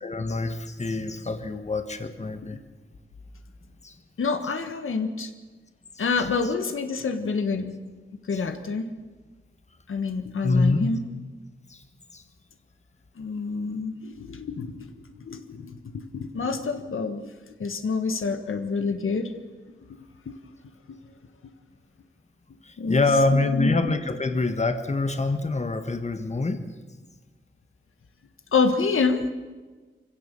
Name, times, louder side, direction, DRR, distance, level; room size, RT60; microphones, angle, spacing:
voice 1, 0.0-2.6 3.8-3.9 10.4-10.9 11.7-11.8 12.1-12.2 22.6-26.6, left 3 dB, 35° left, 8 dB, 1.5 m, -25 dB
voice 2, 4.2-5.3 6.0-7.8 8.3-8.9 9.9-11.0 13.2-17.3 17.6-19.3 19.9-20.0 20.2-20.4 20.9-21.0 21.4-21.5 22.8-23.0 23.3-23.7 28.5-29.3, left 4 dB, 90° left, 7 dB, 1.5 m, -27 dB
24.5 x 16.5 x 6.9 m, 1.3 s
wide cardioid pair, 105°, 20 cm